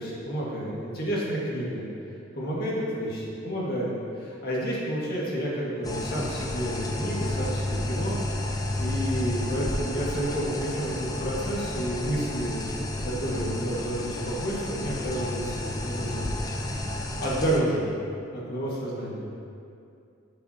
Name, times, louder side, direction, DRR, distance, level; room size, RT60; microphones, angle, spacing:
voice 1, 0.0-1.9 2.3-12.6 13.0-16.9 17.2-18.0 18.3-19.3, right 1 dB, 50° left, -5 dB, 1.8 m, -30 dB
sound 1, 5.8-17.6, left 1 dB, 20° left, 0.4 m, -31 dB
11.0 x 5.7 x 2.8 m, 2.5 s
head